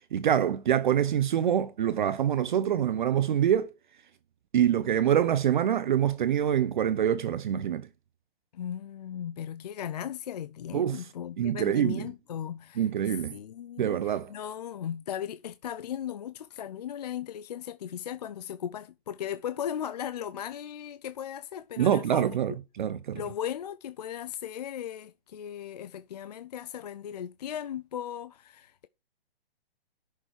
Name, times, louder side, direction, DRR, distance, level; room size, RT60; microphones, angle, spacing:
voice 1, 0.1-3.7 4.5-7.9 10.7-11.0 11.4-12.1 12.8-13.3 13.8-14.3 21.8-23.2, right 10 dB, 50° right, 0.7 m, -25 dB
voice 2, 8.5-12.9 13.3-22.3 23.1-28.9, left 9 dB, 40° left, 0.5 m, -37 dB
11.0 x 6.6 x 4.5 m
hypercardioid pair, 150°, 31 cm